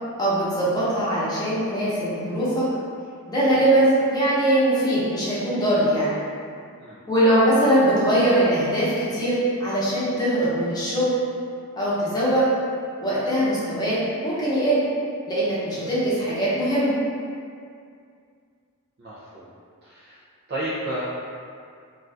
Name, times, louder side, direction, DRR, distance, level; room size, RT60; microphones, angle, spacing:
voice 1, 0.2-2.7 3.3-6.1 7.1-9.3 9.6-11.1 11.8-12.5 13.0-14.0 14.2-14.8 15.3-17.0, right 1 dB, 20° left, -10 dB, 0.8 m, -21 dB
voice 2, 19.0-19.5 19.8-20.2 20.5-21.0, right 1 dB, 50° right, -10 dB, 0.5 m, -32 dB
2.5 x 2.3 x 3.3 m, 2.2 s
head